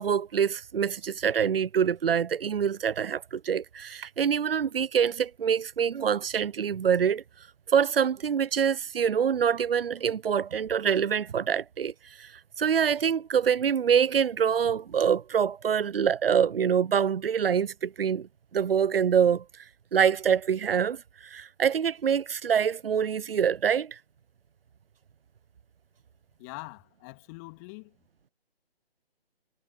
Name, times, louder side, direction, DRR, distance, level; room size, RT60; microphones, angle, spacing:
voice 1, 0.0-7.2 7.7-12.3 12.6-19.6 19.9-24.0, right 7 dB, 65° right, 0.5 m, -25 dB
voice 2, 26.4-28.0, left 30 dB, 15° left, 2.2 m, -43 dB
figure-of-eight pair, 145°, 31 cm